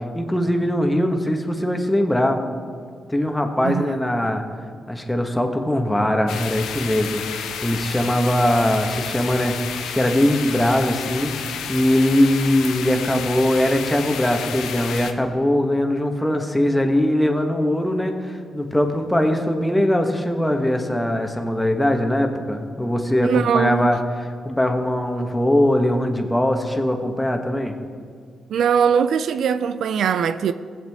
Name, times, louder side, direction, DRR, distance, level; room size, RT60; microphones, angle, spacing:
voice 1, 0.1-2.4 3.1-4.4 4.9-11.3 11.7-27.8, left 1 dB, 10° left, 1.3 m, -21 dB
voice 2, 3.6-3.9 23.2-23.9 28.5-30.5, right 7 dB, 75° right, 0.3 m, -21 dB
sound 1, 6.3-15.1, left 7 dB, 90° left, 0.7 m, -31 dB
16.5 x 7.5 x 3.6 m
supercardioid pair, 60°, 0 cm